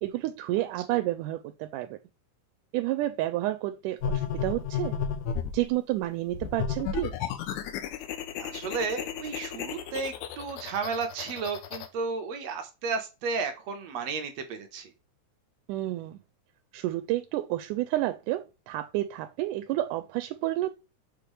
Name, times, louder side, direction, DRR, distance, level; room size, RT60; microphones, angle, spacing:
voice 1, 0.0-2.0 2.7-5.0 5.5-7.2 15.7-16.2 16.7-20.7, right 15 dB, 85° right, 2.1 m, -30 dB
sound 1, 4.0-5.6 6.3-11.9, left 7 dB, 90° left, 2.3 m, -33 dB
voice 2, 8.4-14.9, right 4 dB, 65° right, 2.0 m, -33 dB
6.3 x 5.0 x 3.2 m
omnidirectional pair, 3.6 m